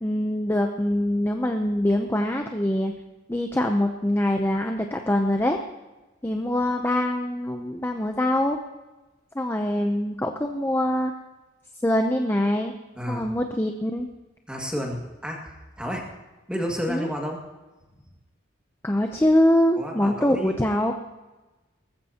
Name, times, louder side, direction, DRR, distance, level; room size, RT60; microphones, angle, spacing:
voice 1, 0.0-2.9 3.3-5.6 6.2-8.6 9.3-11.1 11.8-12.7 13.1-14.1 16.9-17.1 18.8-20.9, left 1 dB, 10° left, 4 dB, 0.6 m, -24 dB
voice 2, 13.0-13.3 14.5-16.1 16.5-17.4 19.8-20.6, equal, 5° right, -1 dB, 2.1 m, -31 dB
19.5 x 15.0 x 2.9 m, 1.1 s
head